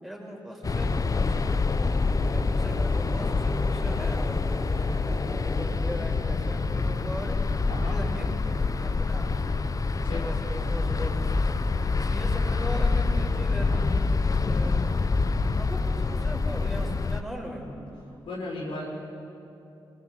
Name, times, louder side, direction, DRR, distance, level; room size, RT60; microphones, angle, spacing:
voice 1, 0.0-7.4 7.8-9.3 10.1-11.6 11.9-14.9 15.6-17.8, equal, ahead, -1 dB, 5.8 m, -39 dB
sound 1, 0.6-17.2, left 3 dB, 40° left, 0.9 m, -26 dB
voice 2, 7.7-8.0 10.0-10.2 18.2-18.9, left 2 dB, 80° left, -3 dB, 5.7 m, -35 dB
21.5 x 19.0 x 8.0 m, 2.9 s
supercardioid pair, 55°, 9 cm